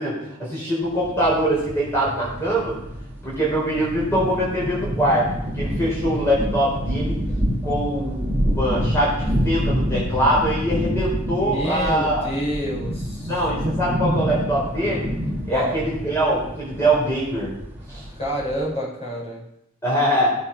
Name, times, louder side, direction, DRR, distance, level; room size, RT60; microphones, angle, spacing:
voice 1, 0.0-2.8 3.2-7.2 7.6-12.3 13.3-15.1 15.5-17.5 17.9-18.0 19.8-20.3, right 1 dB, 15° left, -6 dB, 4.6 m, -23 dB
sound 1, 0.8-18.7, equal, 10° right, 2.2 m, -27 dB
voice 2, 11.4-13.3 15.5-15.8 18.2-19.4, equal, 30° left, -5 dB, 5.5 m, -28 dB
16.5 x 8.1 x 5.9 m, 0.79 s
head